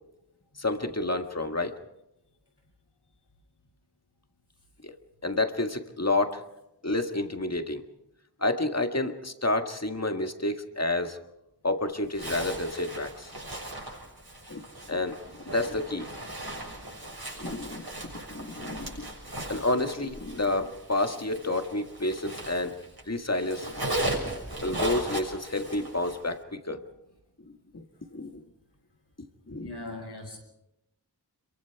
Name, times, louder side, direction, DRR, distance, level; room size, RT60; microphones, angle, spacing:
voice 1, 0.6-1.8 4.8-4.9 5.2-6.4 6.8-7.8 8.4-11.2 11.6-13.3 14.5-16.1 17.4-17.9 18.3-19.1 19.5-22.8 23.1-23.9 24.6-26.8 27.7-27.8 28.1-28.4 29.5-29.7, left 2 dB, 40° left, 6 dB, 1.9 m, -29 dB
Zipper (clothing), 12.1-23.0 23.3-26.3, right 1 dB, 65° right, 6.7 m, -37 dB
voice 2, 29.6-30.4, left 2 dB, 85° left, 1 dB, 6.5 m, -42 dB
26.5 x 23.5 x 4.7 m, 0.87 s
wide cardioid pair, 40°, 40 cm